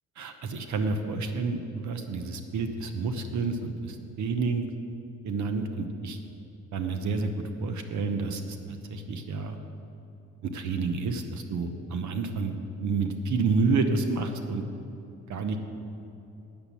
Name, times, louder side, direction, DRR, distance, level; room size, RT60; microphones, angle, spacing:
voice 1, 0.2-4.7 5.2-6.2 6.7-7.3 7.6-9.6 10.5-14.6 15.3-15.6, right 4 dB, 70° right, 7 dB, 0.9 m, -29 dB
8.7 x 7.1 x 8.3 m, 2.8 s
cardioid pair, 90°, 30 cm